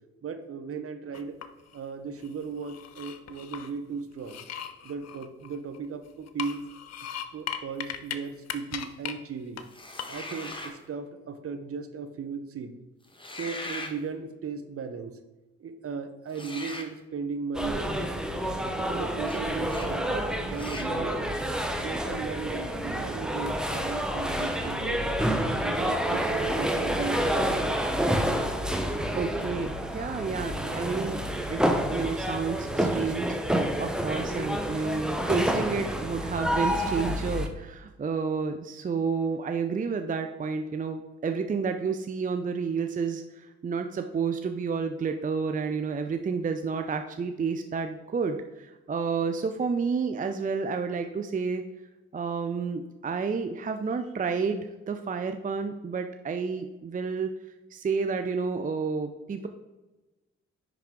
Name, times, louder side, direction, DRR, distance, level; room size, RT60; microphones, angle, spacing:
voice 1, 0.2-1.4 1.7-4.4 4.8-6.7 7.3-9.6 10.1-12.7 13.3-15.2 15.6-18.0 18.6-21.3 21.8-25.2 25.6-27.8, right 5 dB, 45° right, 8 dB, 0.8 m, -36 dB
sound 1, 1.1-1.8 2.2-3.7 4.2-5.9 6.3-8.2 8.5-9.1 9.6-9.7 10.0-10.6, left 9 dB, 55° left, 0.7 m, -38 dB
sound 2, 9.7-10.8 13.1-14.0 16.3-16.9 19.2-19.4 19.7-19.9 20.5-20.9, left 2 dB, 15° left, 1.2 m, -39 dB
sound 3, 17.5-37.5, equal, ahead, 0.9 m, -28 dB
voice 2, 29.2-31.2 31.5-31.6 31.9-51.6 52.1-57.3 57.7-59.5, right 5 dB, 25° right, 7 dB, 0.5 m, -30 dB
10.0 x 3.5 x 3.7 m, 1.1 s
hypercardioid pair, 40°, 32 cm